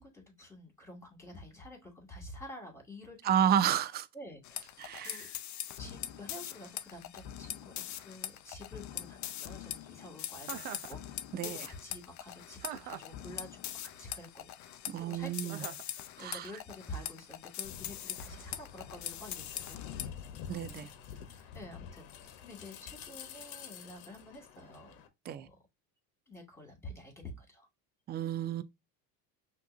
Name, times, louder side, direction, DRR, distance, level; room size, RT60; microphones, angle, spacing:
voice 1, 0.0-3.5 4.1-5.3 5.8-20.6 21.1-25.0 25.3-25.6 26.3-27.7, left 1 dB, 5° left, 2.2 m, -49 dB
voice 2, 3.3-4.1 4.8-5.3 11.3-11.6 14.9-15.6 16.2-16.5 20.5-20.9 25.3-25.5 28.1-28.6, right 9 dB, 25° right, 0.3 m, -31 dB
sound 1, 4.4-20.1, left 12 dB, 40° left, 0.5 m, -43 dB
Chuckle chortle, 10.4-10.9 12.6-13.2 15.5-15.9, right 10 dB, 80° right, 0.7 m, -42 dB
sound 2, 17.6-25.1, left 8 dB, 70° left, 1.1 m, -48 dB
5.9 x 2.8 x 2.6 m
supercardioid pair, 110°, 43 cm